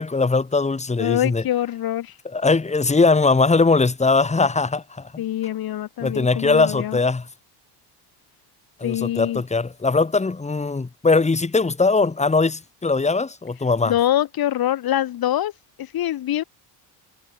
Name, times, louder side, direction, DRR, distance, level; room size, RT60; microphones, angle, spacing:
voice 1, 0.0-1.4 2.2-5.2 6.0-7.3 8.8-13.9, left 3 dB, 15° left, 4.3 m, -20 dB
voice 2, 1.0-2.1 5.2-7.0 8.8-9.4 13.8-15.5 15.8-16.4, left 12 dB, 50° left, 3.1 m, -24 dB
cardioid pair, 140°, 46 cm